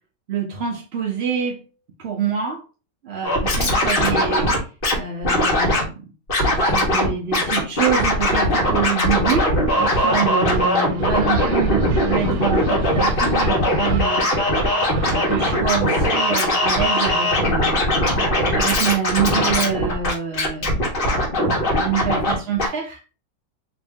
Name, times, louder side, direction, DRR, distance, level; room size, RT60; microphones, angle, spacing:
voice 1, 0.3-1.6 2.0-2.6 3.0-4.7 4.9-5.9 6.6-14.5 14.8-17.8 18.5-20.9 21.7-23.0, right 7 dB, 90° right, 0.5 m, -26 dB
Scratching (performance technique), 3.2-5.0 5.2-5.8 6.3-7.1 7.3-22.3 22.6-22.7, left 1 dB, 35° left, 1.0 m, -20 dB
sound 1, 9.7-15.6, right 7 dB, 75° right, 1.2 m, -37 dB
3.0 x 2.6 x 3.4 m
omnidirectional pair, 1.9 m